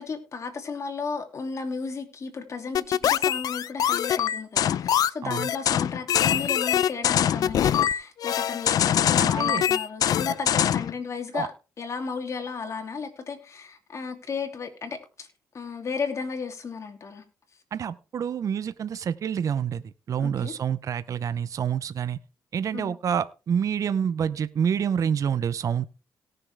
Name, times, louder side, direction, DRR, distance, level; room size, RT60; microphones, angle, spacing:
voice 1, 0.0-11.5 11.8-15.3 15.5-17.2 20.2-20.5 22.7-22.9, left 5 dB, 45° left, 2.8 m, -34 dB
sound 1, 2.7-10.9, left 10 dB, 65° left, 0.5 m, -23 dB
voice 2, 9.2-9.6 11.3-11.5 17.7-22.2 22.5-25.9, right 8 dB, 55° right, 0.7 m, -27 dB
18.0 x 6.7 x 3.5 m
cardioid pair, 90°, 7 cm